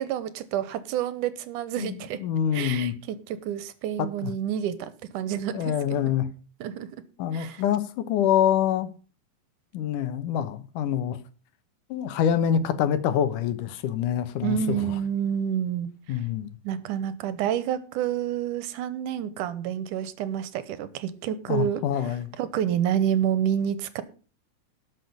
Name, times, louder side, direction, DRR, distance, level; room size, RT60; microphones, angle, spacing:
voice 1, 0.0-2.2 2.5-5.7 6.0-6.1 6.6-6.9 7.3-7.6 14.4-16.2 16.6-21.8 22.4-24.0, right 9 dB, 85° right, 2.5 m, -28 dB
voice 2, 1.8-3.0 4.2-4.3 5.5-6.3 7.2-8.9 9.7-11.2 11.9-14.8 16.1-16.5 21.5-22.3, left 9 dB, 80° left, 2.6 m, -25 dB
12.0 x 6.3 x 6.8 m
omnidirectional pair, 3.6 m